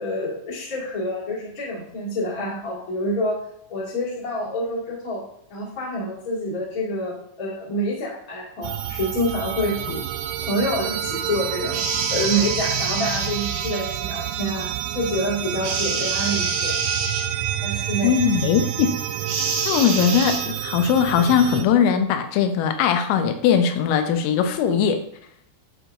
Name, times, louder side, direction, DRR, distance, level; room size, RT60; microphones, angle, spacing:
voice 1, 0.0-3.4 3.7-5.2 5.5-10.0 10.4-11.8 12.1-14.7 14.9-16.7 17.6-18.1, equal, 35° left, -5 dB, 1.3 m, -27 dB
sound 1, 8.6-21.6, right 11 dB, 85° right, 3.2 m, -29 dB
sound 2, 11.7-13.9 15.6-17.3 19.3-20.4, right 4 dB, 70° right, 2.8 m, -27 dB
voice 2, 18.0-18.9 19.7-25.0, left 7 dB, 90° left, 7 dB, 3.3 m, -20 dB
11.5 x 4.6 x 2.6 m, 0.71 s
omnidirectional pair, 5.7 m